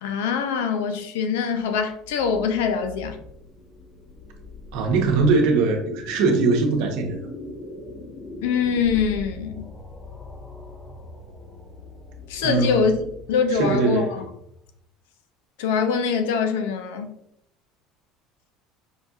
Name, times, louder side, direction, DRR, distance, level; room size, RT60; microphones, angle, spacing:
voice 1, 0.0-3.2 8.4-9.6 12.3-13.0 13.3-14.2 15.6-17.1, left 6 dB, 90° left, 0.5 m, -23 dB
sound 1, 1.6-14.8, left 2 dB, 30° left, 1.1 m, -41 dB
voice 2, 4.7-7.2 12.4-12.9 13.5-14.2, right 3 dB, 75° right, 0.9 m, -21 dB
5.5 x 2.6 x 2.3 m
supercardioid pair, 105°, 0 cm